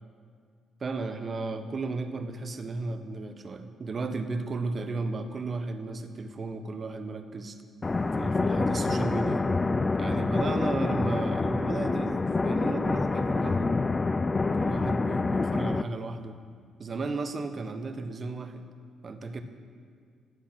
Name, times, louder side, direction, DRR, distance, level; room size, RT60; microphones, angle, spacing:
voice 1, 0.8-7.6 8.2-9.5 9.9-13.8 14.5-16.4 16.8-18.6 19.0-19.4, right 3 dB, 40° right, 8 dB, 0.9 m, -34 dB
sound 1, 7.8-15.8, left 3 dB, 25° left, 0.3 m, -27 dB
12.5 x 8.5 x 5.9 m, 2.1 s
cardioid pair, 90°, 0 cm